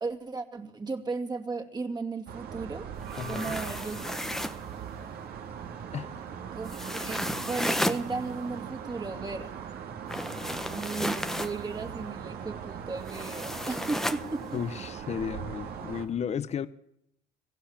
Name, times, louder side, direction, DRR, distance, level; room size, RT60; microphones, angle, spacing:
voice 1, 0.0-2.9 3.2-4.0 6.5-9.5 10.6-14.6, right 3 dB, 25° right, 2.5 m, -35 dB
sound 1, 2.3-16.1, right 7 dB, 65° right, 2.4 m, -40 dB
sound 2, 3.0-4.7 6.7-8.0 10.1-11.6 13.1-14.2, left 1 dB, ahead, 1.0 m, -33 dB
voice 2, 3.2-3.6 5.9-6.2 14.5-16.7, left 7 dB, 40° left, 1.0 m, -34 dB
26.5 x 16.0 x 7.3 m
cardioid pair, 110°, 17 cm